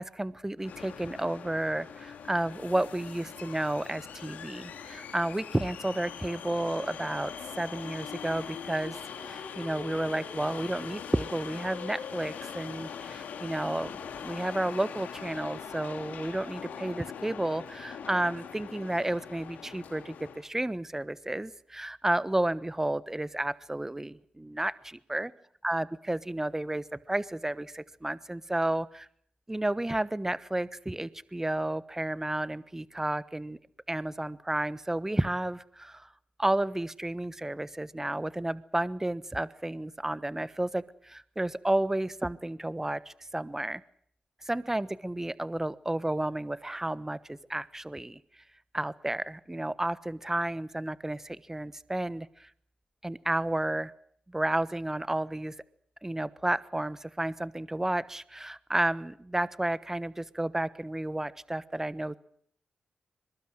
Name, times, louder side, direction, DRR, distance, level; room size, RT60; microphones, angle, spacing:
voice 1, 0.0-9.0 9.2-13.9 14.2-25.3 25.6-29.1 29.5-33.6 33.9-36.1 36.4-43.8 44.4-48.2 48.7-52.5 53.0-53.9 54.3-55.5 56.0-62.2, right 1 dB, 15° right, 16 dB, 1.2 m, -32 dB
sound 1, 0.6-20.5, left 7 dB, 85° left, 2.6 m, -42 dB
23.0 x 22.0 x 7.8 m, 0.64 s
supercardioid pair, 50°, 3 cm